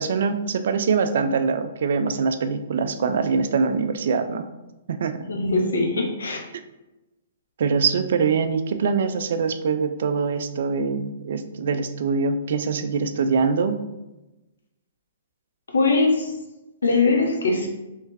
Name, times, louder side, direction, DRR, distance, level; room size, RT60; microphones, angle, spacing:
voice 1, 0.0-4.5 4.9-5.3 7.6-13.8, right 5 dB, 65° right, 9 dB, 0.4 m, -23 dB
voice 2, 5.2-6.4 15.7-16.3 16.8-17.7, left 3 dB, 80° left, 1 dB, 0.8 m, -21 dB
3.3 x 3.1 x 3.2 m, 1.0 s
hypercardioid pair, 120°, 0 cm